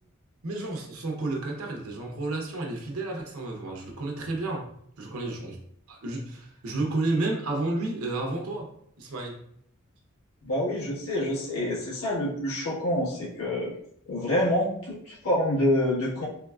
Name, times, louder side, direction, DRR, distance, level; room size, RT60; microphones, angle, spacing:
voice 1, 0.4-4.7 5.0-5.6 5.9-8.7 9.0-9.4, right 2 dB, 80° right, 1 dB, 0.8 m, -31 dB
voice 2, 10.4-13.8 14.1-16.3, left 1 dB, 80° left, -5 dB, 1.4 m, -27 dB
3.6 x 3.4 x 2.3 m, 0.68 s
head